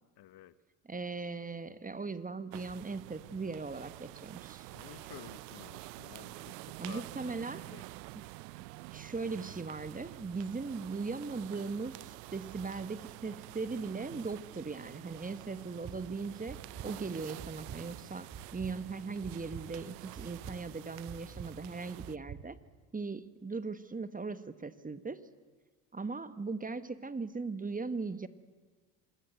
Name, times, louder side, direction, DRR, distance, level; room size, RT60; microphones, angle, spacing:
voice 1, 0.2-0.6 4.7-7.4 7.7-7.9, left 12 dB, 50° left, 16 dB, 1.1 m, -52 dB
voice 2, 0.9-4.7 6.8-7.7 8.9-22.6 22.9-25.3 25.9-28.3, right 4 dB, 15° right, 13 dB, 1.3 m, -39 dB
sound 1, 2.5-22.2, right 20 dB, 80° right, 0.7 m, -48 dB
sound 2, 15.7-16.0 16.5-16.9 17.4-17.8 18.3-18.7 19.2-19.6 20.1-20.6 21.1-21.5 22.0-22.4, right 8 dB, 45° right, 3.7 m, -45 dB
26.5 x 19.0 x 8.0 m, 1.4 s
hypercardioid pair, 70°, 48 cm